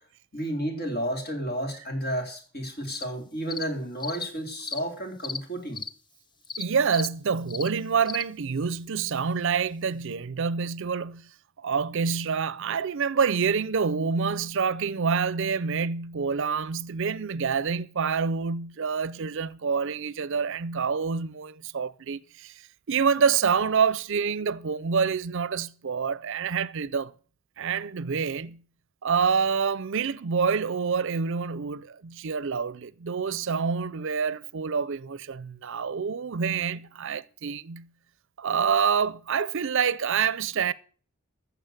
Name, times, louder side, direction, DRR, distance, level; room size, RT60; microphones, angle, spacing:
voice 1, 0.3-5.8, equal, 45° left, 3.8 m, -32 dB
sound 1, 2.9-3.0 3.5-3.6 4.0-4.2 4.7-4.8 5.2-5.4 5.7-5.9 6.5-6.6 6.9-7.1 7.5-7.7 8.1-8.2, left 5 dB, 20° left, 0.6 m, -35 dB
voice 2, 6.6-11.3 11.6-22.6 22.9-27.1 27.6-28.6 29.0-37.9 38.4-40.7, right 6 dB, 65° right, 0.5 m, -27 dB
14.5 x 7.0 x 6.6 m
head